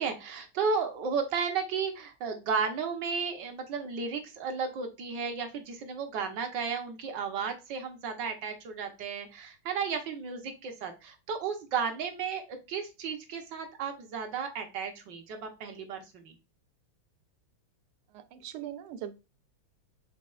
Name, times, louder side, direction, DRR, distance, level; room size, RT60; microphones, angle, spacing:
voice 1, 0.0-16.3, right 5 dB, 65° right, 1.3 m, -33 dB
voice 2, 18.1-19.2, right 10 dB, 85° right, 1.5 m, -41 dB
5.4 x 3.3 x 2.3 m
omnidirectional pair, 2.3 m